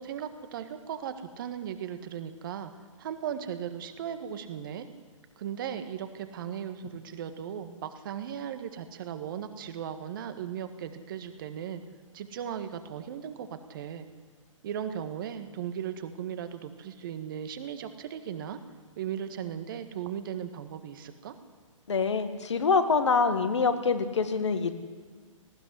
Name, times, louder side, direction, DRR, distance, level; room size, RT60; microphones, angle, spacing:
voice 1, 0.0-2.7 3.0-4.9 5.4-11.8 12.1-14.1 14.6-18.6 19.0-21.3, right 9 dB, 40° right, 9 dB, 1.6 m, -37 dB
voice 2, 21.9-24.7, left 5 dB, 60° left, 8 dB, 1.9 m, -25 dB
19.0 x 16.0 x 9.7 m, 1.5 s
figure-of-eight pair, 120°, 17 cm